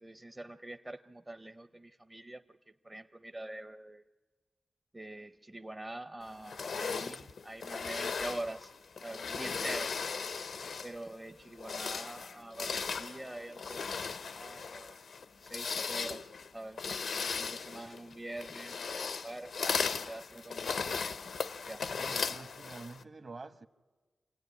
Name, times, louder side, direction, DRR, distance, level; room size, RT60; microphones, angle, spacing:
voice 1, 0.0-2.6 2.8-4.0 4.9-8.7 9.0-10.0 10.8-14.1 14.3-15.0 15.4-16.8 17.1-19.5 20.0-21.1 21.7-21.9, right 1 dB, 20° right, 8 dB, 0.7 m, -45 dB
sound 1, 6.5-11.0 11.5-23.0, left 5 dB, 80° left, 0.7 m, -37 dB
voice 2, 22.0-23.7, right 3 dB, 50° right, 10 dB, 1.2 m, -47 dB
27.0 x 16.0 x 9.8 m, 1.4 s
cardioid pair, 70°, 0 cm